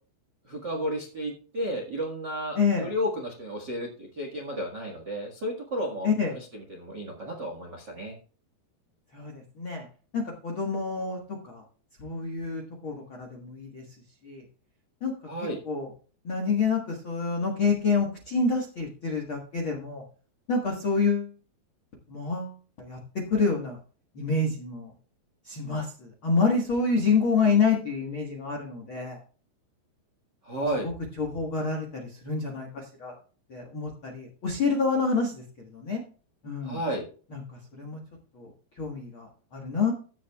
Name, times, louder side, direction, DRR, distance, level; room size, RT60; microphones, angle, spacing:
voice 1, 0.4-8.1 15.3-15.6 30.4-30.9 36.6-37.1, equal, 65° right, 1 dB, 1.0 m, -32 dB
voice 2, 2.5-2.9 6.0-6.4 9.1-9.9 10.1-11.6 12.0-13.8 14.2-14.4 15.0-15.1 15.4-15.9 16.2-20.0 20.5-21.3 22.1-23.8 24.1-24.9 25.4-29.2 30.6-30.9 31.2-33.1 33.5-36.0 36.4-36.8 37.3-38.0 38.3-38.5 38.8-39.9, left 4 dB, 60° left, 1 dB, 1.3 m, -28 dB
15.0 x 10.0 x 2.4 m, 0.38 s
omnidirectional pair, 5.0 m